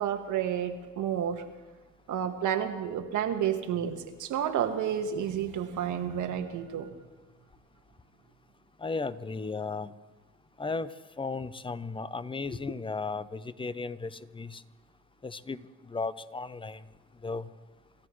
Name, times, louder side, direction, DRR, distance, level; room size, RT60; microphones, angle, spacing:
voice 1, 0.0-1.4 2.1-6.9, right 9 dB, 75° right, 6 dB, 1.5 m, -30 dB
voice 2, 8.8-9.9 10.6-14.6 15.2-16.8 17.2-17.5, left 4 dB, 15° left, 14 dB, 0.6 m, -35 dB
27.5 x 14.0 x 3.2 m, 1.2 s
cardioid pair, 90°, 30 cm